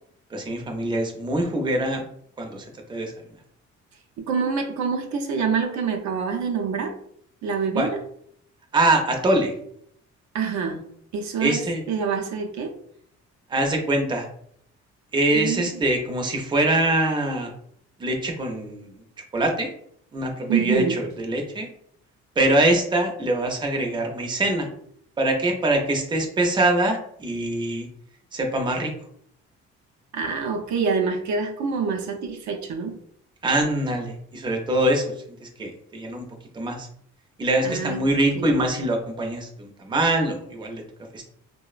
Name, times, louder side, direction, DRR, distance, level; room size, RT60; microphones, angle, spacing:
voice 1, 0.3-2.1 2.4-3.1 7.8-7.9 8.7-9.5 11.4-11.8 13.5-14.3 15.1-17.5 18.0-18.9 19.3-19.7 20.1-21.7 22.4-24.7 25.2-27.9 28.3-28.9 33.4-35.1 35.4-36.2 36.5-36.9 37.4-40.8 41.1-41.2, right 1 dB, 15° right, 2 dB, 0.5 m, -23 dB
voice 2, 4.2-7.0 7.4-8.0 10.3-10.8 11.1-11.6 11.9-12.7 15.3-15.8 20.5-21.0 30.1-32.9 37.6-38.0 38.3-38.6, right 5 dB, 70° right, 3 dB, 0.5 m, -26 dB
2.9 x 2.1 x 2.3 m, 0.68 s
cardioid pair, 90°, 30 cm